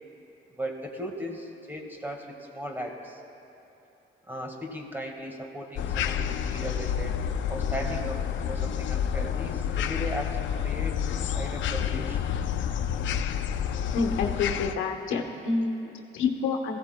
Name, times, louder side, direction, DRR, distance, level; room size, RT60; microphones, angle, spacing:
voice 1, 0.5-3.2 4.3-7.2 7.5-12.2, equal, 10° right, 2 dB, 1.7 m, -37 dB
sound 1, 5.8-14.7, left 8 dB, 70° left, 0.5 m, -29 dB
voice 2, 13.9-16.8, left 4 dB, 90° left, 3 dB, 1.1 m, -28 dB
21.0 x 15.5 x 2.2 m, 2.9 s
cardioid pair, 90°, 20 cm